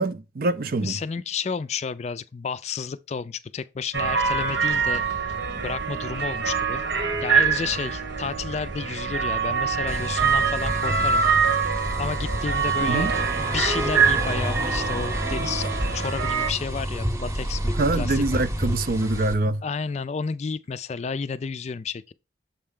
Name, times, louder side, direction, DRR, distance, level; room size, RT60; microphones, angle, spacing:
voice 1, 0.0-1.0 12.8-13.1 17.8-19.6, right 2 dB, 55° right, 0.5 m, -24 dB
voice 2, 0.8-5.0 5.6-6.8 7.2-11.2 12.0-18.4 19.6-22.1, left 5 dB, 40° left, 0.3 m, -31 dB
sound 1, 3.9-16.5, right 6 dB, 85° right, 1.3 m, -25 dB
sound 2, 9.9-19.3, equal, 15° right, 0.8 m, -29 dB
7.2 x 4.4 x 3.7 m
head